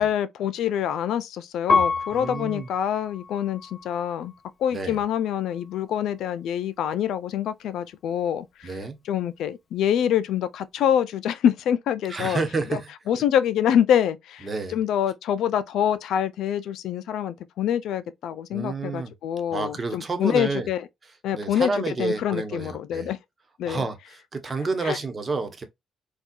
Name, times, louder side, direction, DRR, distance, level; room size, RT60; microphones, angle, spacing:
voice 1, 0.0-4.3 4.6-8.7 9.1-12.4 12.7-12.8 13.1-20.9 21.2-21.7 22.0-23.2 23.6-23.8 24.8-25.0, left 9 dB, 80° left, 0.4 m, -25 dB
Piano, 1.7-4.4 5.1-5.8, left 4 dB, 45° left, 0.9 m, -28 dB
voice 2, 2.1-2.7 4.7-5.0 8.6-9.0 12.1-13.2 14.4-14.8 18.5-19.1 19.5-20.7 21.3-23.1 23.6-25.6, right 3 dB, 30° right, 1.0 m, -30 dB
4.3 x 2.3 x 2.4 m
cardioid pair, 90°, 0 cm